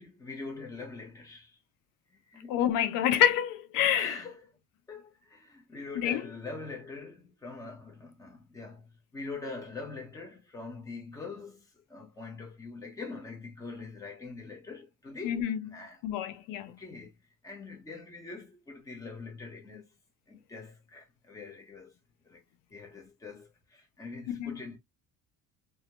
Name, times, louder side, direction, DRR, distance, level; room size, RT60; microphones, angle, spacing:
voice 1, 0.0-1.6 2.1-2.6 3.9-4.4 4.9-16.0 16.7-17.1 17.4-19.9 20.3-21.9 22.2-22.4 22.7-24.8, left 3 dB, 10° left, 0.7 m, -43 dB
voice 2, 2.5-4.2 5.9-6.2 15.2-15.6 16.0-16.8 24.3-24.6, left 10 dB, 85° left, 0.5 m, -27 dB
2.3 x 2.1 x 2.8 m
cardioid pair, 170°, 31 cm